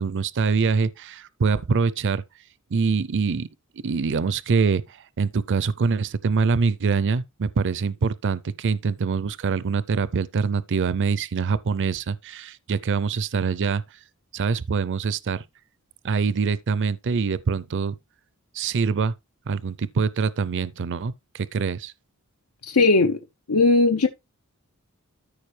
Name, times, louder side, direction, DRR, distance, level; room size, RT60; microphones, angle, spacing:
voice 1, 0.0-2.2 2.7-3.5 3.8-13.8 14.3-15.4 16.0-17.9 18.5-19.1 19.5-21.9, right 5 dB, 55° right, 0.5 m, -24 dB
voice 2, 22.6-23.2 23.5-24.1, left 3 dB, 85° left, 0.8 m, -18 dB
13.5 x 4.9 x 3.2 m
head